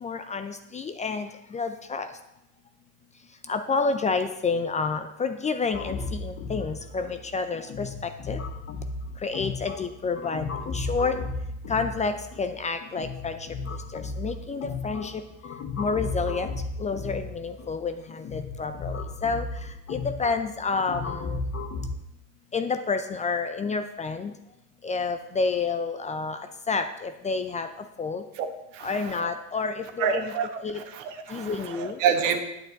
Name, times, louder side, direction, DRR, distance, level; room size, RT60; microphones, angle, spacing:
voice 1, 0.0-1.3 1.5-2.1 3.5-7.9 8.3-8.4 9.2-11.2 11.7-13.4 13.9-15.2 15.8-16.5 16.8-19.5 19.9-21.4 22.5-24.3 24.8-26.4 26.7-27.7 28.0-28.2 28.8-30.3 30.6-30.8 31.3-32.0, left 4 dB, 20° left, 9 dB, 0.5 m, -29 dB
sound 1, 5.7-22.0, left 3 dB, 35° left, 1.2 m, -35 dB
voice 2, 30.0-32.4, right 7 dB, 70° right, 6 dB, 1.4 m, -27 dB
9.0 x 8.5 x 4.0 m, 0.86 s
hypercardioid pair, 100°, 40 cm